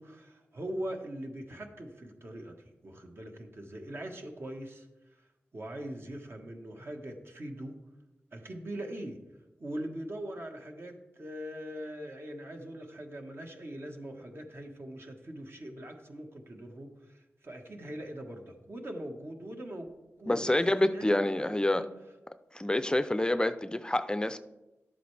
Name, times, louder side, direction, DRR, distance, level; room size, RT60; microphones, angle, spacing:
voice 1, 0.0-4.9 5.5-7.8 8.3-9.2 9.6-19.9 20.2-20.5 20.8-21.9, right 1 dB, 55° right, 3 dB, 1.3 m, -41 dB
voice 2, 20.3-21.9 22.5-24.4, left 1 dB, 15° left, 12 dB, 0.5 m, -27 dB
11.5 x 7.8 x 3.3 m, 1.0 s
cardioid pair, 55°, 5 cm